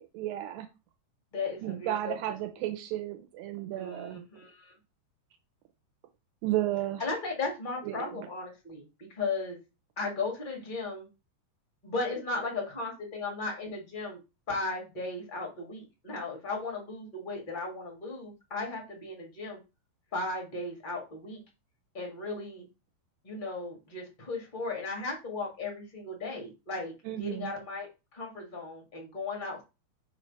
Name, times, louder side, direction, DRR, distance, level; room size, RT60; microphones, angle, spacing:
voice 1, 0.1-0.7 1.6-4.2 6.4-7.1 7.8-8.1 27.1-27.5, right 14 dB, 80° right, 7 dB, 2.3 m, -33 dB
voice 2, 1.3-2.1 3.7-4.7 7.0-9.6 10.0-11.1 11.8-14.2 14.5-19.6 20.1-21.4 21.9-22.6 23.2-29.6, left 3 dB, 45° left, 0 dB, 0.6 m, -36 dB
5.9 x 3.2 x 5.3 m, 0.27 s
omnidirectional pair, 4.4 m